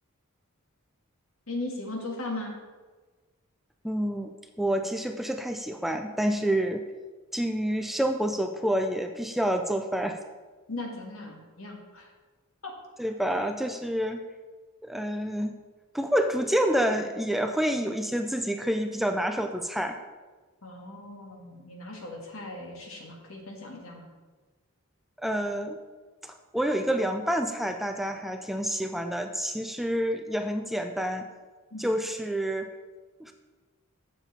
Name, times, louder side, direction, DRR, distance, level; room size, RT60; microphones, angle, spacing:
voice 1, 1.5-2.5 10.7-12.1 12.6-12.7 20.6-24.1 31.7-31.9, left 2 dB, 70° left, 1 dB, 1.6 m, -38 dB
voice 2, 3.8-4.3 4.6-6.8 7.3-10.2 13.0-14.2 14.8-15.6 15.9-20.0 25.2-25.8 26.2-31.3 31.8-32.7 33.2-33.3, equal, ahead, 6 dB, 0.3 m, -28 dB
7.4 x 7.0 x 4.1 m, 1.4 s
head